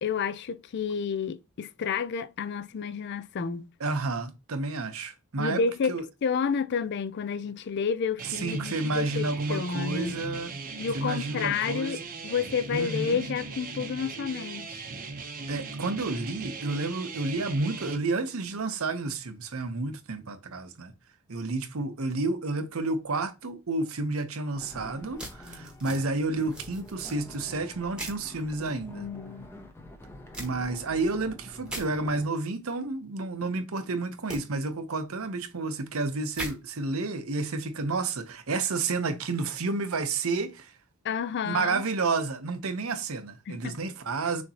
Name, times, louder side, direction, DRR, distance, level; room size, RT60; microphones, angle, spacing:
voice 1, 0.0-3.7 5.4-6.0 6.2-10.2 10.8-14.9 28.9-29.5 41.0-41.8 43.5-43.8, left 6 dB, 55° left, 0.4 m, -30 dB
voice 2, 3.8-5.6 5.9-6.0 8.4-10.5 10.9-12.0 12.7-13.3 15.5-20.9 21.3-29.1 30.4-40.7 41.4-44.4, right 3 dB, 80° right, 0.8 m, -30 dB
sound 1, 8.2-18.0, right 4 dB, 40° right, 0.7 m, -39 dB
sound 2, 24.5-32.3, left 1 dB, 10° left, 0.6 m, -47 dB
sound 3, 25.2-26.0 26.5-27.1 28.0-28.2 30.3-30.5 31.7-31.9 34.3-34.4 36.3-36.5, right 1 dB, 5° right, 1.1 m, -38 dB
6.4 x 2.9 x 2.8 m
head